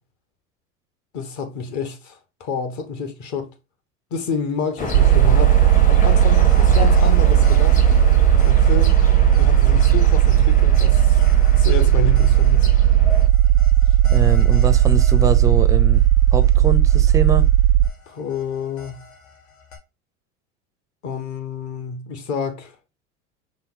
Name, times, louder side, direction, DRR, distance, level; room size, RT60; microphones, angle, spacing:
voice 1, 1.1-3.5 4.1-5.6 5.9-7.8 8.5-8.9 9.4-11.2 11.6-12.7 18.1-19.0 21.0-22.7, left 5 dB, 45° left, 1.2 m, -29 dB
sound 1, 4.8-13.3, left 4 dB, 20° left, 0.8 m, -28 dB
sound 2, 4.9-17.9, right 12 dB, 80° right, 0.5 m, -15 dB
sound 3, 6.1-19.8, left 5 dB, 80° left, 1.6 m, -44 dB
voice 2, 14.1-16.0 16.3-17.5, right 3 dB, 10° right, 0.4 m, -24 dB
5.6 x 2.0 x 3.9 m
hypercardioid pair, 90°, 39 cm